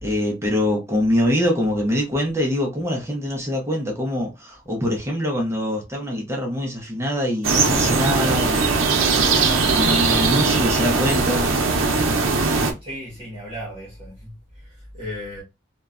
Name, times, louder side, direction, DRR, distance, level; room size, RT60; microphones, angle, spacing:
voice 1, 0.0-8.8 9.6-11.5, left 1 dB, 15° right, 0.5 m, -24 dB
sound 1, 7.4-12.7, right 4 dB, 85° right, 0.6 m, -20 dB
voice 2, 12.8-15.4, equal, 30° right, 0.9 m, -36 dB
3.0 x 2.2 x 2.3 m
head